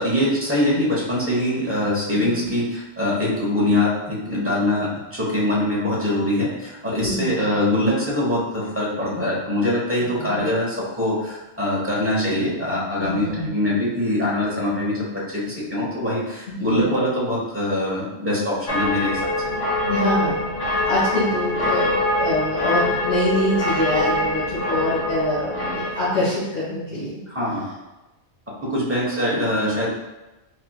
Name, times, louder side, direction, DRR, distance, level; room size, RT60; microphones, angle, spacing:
voice 1, 0.0-19.2 27.3-27.6 28.7-29.9, left 1 dB, 15° right, -6 dB, 0.8 m, -23 dB
voice 2, 2.1-2.5 7.0-7.4 9.9-10.4 13.0-13.5 16.6-16.9 19.9-27.1, left 1 dB, 70° left, -13 dB, 1.9 m, -25 dB
sound 1, 18.7-26.3, left 1 dB, 90° left, 1.1 m, -24 dB
4.6 x 2.9 x 2.3 m, 1.0 s
omnidirectional pair, 1.2 m